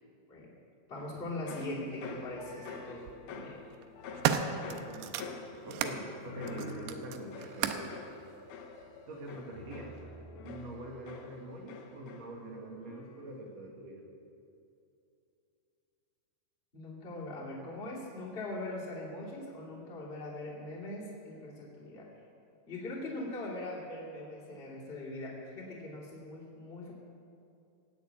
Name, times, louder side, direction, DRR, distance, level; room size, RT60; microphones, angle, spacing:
voice 1, 0.9-3.6 16.7-22.1 22.7-26.9, left 2 dB, 15° left, -6 dB, 2.5 m, -41 dB
sound 1, 1.0-12.6 12.9-13.4, left 4 dB, 70° left, 2.0 m, -47 dB
sound 2, 1.6-1.7 2.8-3.2 3.7-6.0 6.5-8.0 8.8-8.9, right 9 dB, 85° right, 2.7 m, -34 dB
voice 2, 4.0-7.9 9.1-10.0 10.4-14.1, right 2 dB, 50° right, 0 dB, 2.4 m, -45 dB
17.5 x 7.0 x 8.4 m, 2.7 s
omnidirectional pair, 4.7 m